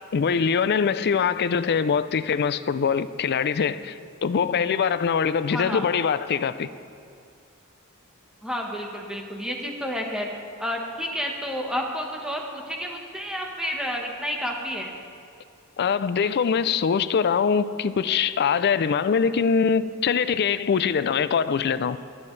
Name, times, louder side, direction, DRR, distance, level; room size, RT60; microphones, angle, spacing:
voice 1, 0.1-6.7 15.8-22.0, left 6 dB, 50° left, 0.4 m, -23 dB
voice 2, 5.5-5.8 8.4-10.3 10.6-14.9, equal, 5° right, 1.3 m, -30 dB
25.0 x 8.8 x 3.3 m
head